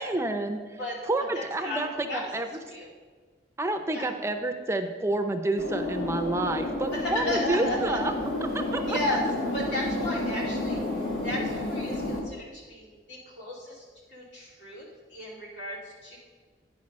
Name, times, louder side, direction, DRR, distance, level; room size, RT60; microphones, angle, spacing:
voice 1, 0.0-0.8 1.1-2.6 3.6-8.1 8.5-8.8, right 2 dB, 15° right, 6 dB, 0.4 m, -29 dB
voice 2, 1.3-1.8 2.1-2.3 2.7-2.9 3.9-4.0 6.9-8.0 8.9-9.2 9.5-16.2, left 1 dB, 90° left, -5 dB, 2.6 m, -34 dB
sound 1, 5.6-12.2, left 2 dB, 65° left, 1.6 m, -30 dB
9.7 x 4.6 x 5.3 m, 1.4 s
head